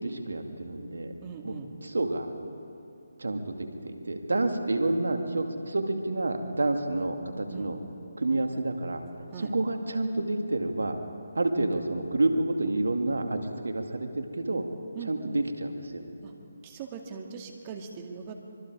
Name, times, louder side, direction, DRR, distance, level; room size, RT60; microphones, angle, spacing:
voice 1, 0.0-1.1 1.4-1.5 1.8-2.3 3.2-7.8 8.2-9.0 9.4-11.0 11.3-14.6 15.1-16.0, right 2 dB, 80° right, 5 dB, 2.3 m, -29 dB
voice 2, 1.2-1.7 7.5-7.7 9.3-9.5 14.9-15.2 16.2-16.3 16.6-18.3, right 6 dB, 25° right, 3 dB, 2.2 m, -41 dB
24.5 x 23.5 x 4.9 m, 2.8 s
figure-of-eight pair, 155°, 0 cm